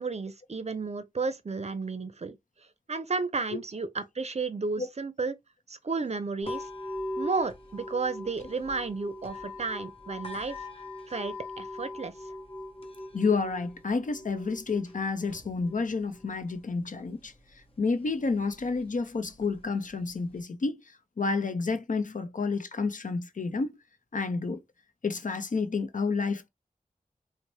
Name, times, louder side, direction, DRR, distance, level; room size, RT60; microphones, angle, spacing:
voice 1, 0.0-2.4 2.9-5.4 5.7-6.7 7.2-10.6 11.1-12.1, right 4 dB, 50° right, 0.5 m, -32 dB
sound 1, 6.4-20.4, left 2 dB, 40° left, 0.9 m, -42 dB
voice 2, 13.1-17.3 17.8-20.8 21.2-23.8 24.1-24.6 25.0-26.5, left 4 dB, 65° left, 0.6 m, -30 dB
4.0 x 2.1 x 3.0 m
wide cardioid pair, 70°, 14 cm